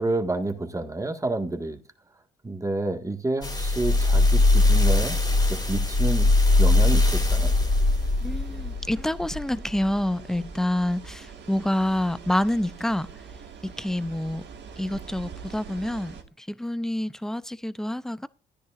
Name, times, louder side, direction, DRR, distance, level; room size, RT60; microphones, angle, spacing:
voice 1, 0.0-1.8 2.4-5.1 5.7-6.3 6.6-7.5, right 2 dB, 15° right, 1.7 m, -29 dB
sound 1, 3.4-9.9 10.5-10.6, left 2 dB, 20° left, 3.0 m, -21 dB
sound 2, 3.7-16.2, right 6 dB, 60° right, 2.3 m, -44 dB
voice 2, 8.2-13.1 13.6-14.4 14.8-18.3, left 1 dB, ahead, 0.5 m, -27 dB
14.0 x 10.0 x 2.5 m
cardioid pair, 90°, 20 cm